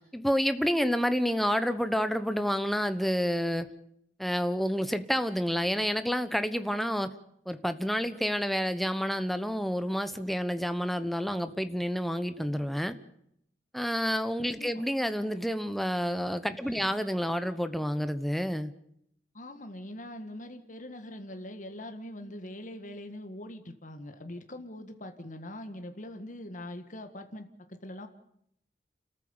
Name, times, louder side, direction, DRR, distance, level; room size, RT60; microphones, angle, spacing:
voice 1, 0.0-3.7 4.2-7.1 7.5-13.0 13.7-18.7, equal, ahead, 10 dB, 1.0 m, -29 dB
voice 2, 16.6-16.9 19.3-28.1, left 1 dB, 45° left, 7 dB, 1.7 m, -42 dB
29.0 x 14.0 x 7.1 m, 0.73 s
head